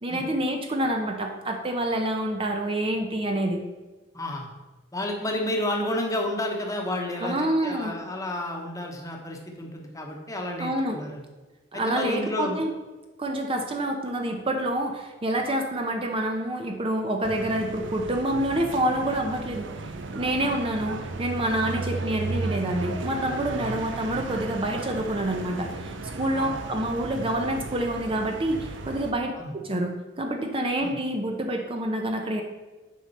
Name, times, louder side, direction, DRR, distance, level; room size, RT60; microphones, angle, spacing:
voice 1, 0.0-3.6 7.2-7.9 10.6-11.0 11.7-12.7 13.2-19.7 20.1-32.4, right 1 dB, 30° right, 3 dB, 0.7 m, -27 dB
voice 2, 4.1-4.5 4.9-11.2 11.7-12.6 20.4-20.5 21.6-21.7 23.7-23.8 26.3-26.6 29.3-29.5 30.8-31.0, left 1 dB, 20° left, 1 dB, 1.1 m, -31 dB
sound 1, 17.2-29.1, right 3 dB, 90° right, 0.6 m, -35 dB
8.6 x 5.2 x 4.2 m, 1.2 s
head